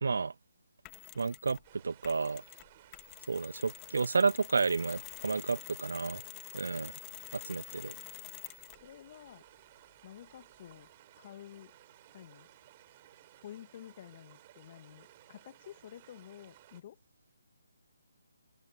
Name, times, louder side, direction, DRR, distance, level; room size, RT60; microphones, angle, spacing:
voice 1, 0.0-0.3 1.2-1.6 1.8-2.4 3.3-6.2 6.5-6.9 7.3-8.0, right 4 dB, 60° right, 0.4 m, -31 dB
Mechanisms, 0.8-1.7 2.0-8.9, left 29 dB, 20° left, 2.6 m, -48 dB
sound 1, 1.6-16.8, right 15 dB, 30° right, 5.8 m, -59 dB
voice 2, 8.7-9.4 10.0-10.9 11.2-11.7 12.1-12.5 13.4-17.0, left 11 dB, 35° left, 2.2 m, -51 dB
open air
figure-of-eight pair, 145°, 0 cm